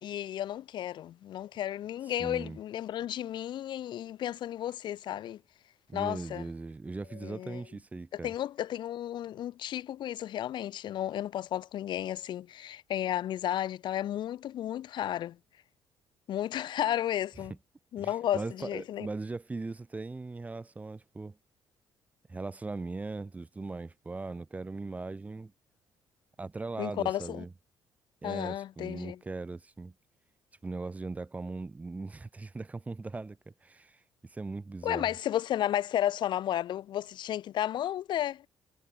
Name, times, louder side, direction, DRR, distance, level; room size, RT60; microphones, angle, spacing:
voice 1, 0.0-5.4 5.9-6.5 7.1-7.6 8.2-15.4 16.3-17.5 17.9-19.1 26.8-27.4 28.2-29.2 34.8-38.5, left 11 dB, 65° left, 4.9 m, -33 dB
voice 2, 2.2-2.6 5.9-8.3 18.0-21.4 22.3-25.5 26.4-27.5 28.2-29.9 30.6-35.1, right 3 dB, 15° right, 3.8 m, -39 dB
cardioid pair, 135°, 9 cm